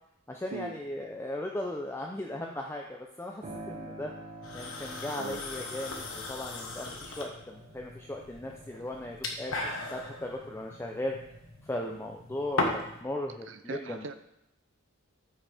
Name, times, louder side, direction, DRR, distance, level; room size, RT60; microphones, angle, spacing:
voice 1, 0.3-4.1 4.5-9.5 9.9-11.2 11.6-14.1, left 1 dB, 10° left, 1 dB, 0.6 m, -37 dB
Piano, 3.4-11.9 12.3-13.3, right 1 dB, 30° right, 1.4 m, -49 dB
sound 1, 4.4-13.0, left 2 dB, 70° left, 1.4 m, -38 dB
voice 2, 13.5-14.1, right 3 dB, 60° right, 9 dB, 0.6 m, -40 dB
13.5 x 6.2 x 3.5 m, 0.80 s
head